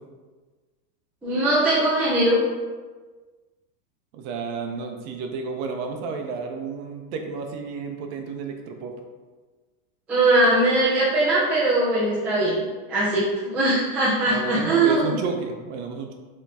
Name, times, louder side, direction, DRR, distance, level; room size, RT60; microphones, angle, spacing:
voice 1, 1.2-2.4 10.1-15.2, right 2 dB, 5° right, -8 dB, 0.3 m, -21 dB
voice 2, 4.1-8.9 14.3-16.1, right 5 dB, 50° right, 4 dB, 0.6 m, -31 dB
4.5 x 3.0 x 3.4 m, 1.3 s
supercardioid pair, 145°, 46 cm